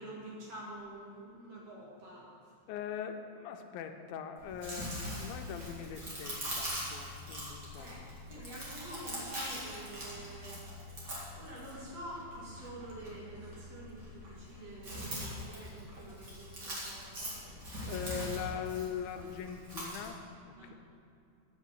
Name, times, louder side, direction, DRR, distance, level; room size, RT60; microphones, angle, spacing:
voice 1, 0.0-2.5 7.8-10.6 11.4-17.6 20.6-20.7, right 1 dB, 50° right, -5 dB, 2.5 m, -48 dB
voice 2, 2.7-8.1 8.3-8.7 17.8-20.7, left 8 dB, 85° left, 6 dB, 2.4 m, -41 dB
Chewing mastication, 4.4-20.1, equal, 35° right, 2.2 m, -42 dB
8.3 x 6.8 x 7.1 m, 2.5 s
omnidirectional pair, 4.2 m